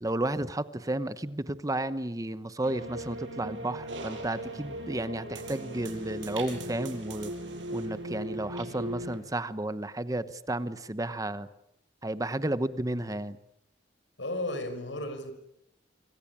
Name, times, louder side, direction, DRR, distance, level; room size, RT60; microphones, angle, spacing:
voice 1, 0.0-7.3 7.7-11.5 12.0-13.4, right 1 dB, 20° right, 13 dB, 1.0 m, -32 dB
sound 1, 2.6-9.2, right 1 dB, 85° right, 6.8 m, -38 dB
voice 2, 14.2-15.3, left 1 dB, 80° left, 10 dB, 6.3 m, -34 dB
26.0 x 26.0 x 8.7 m, 0.80 s
head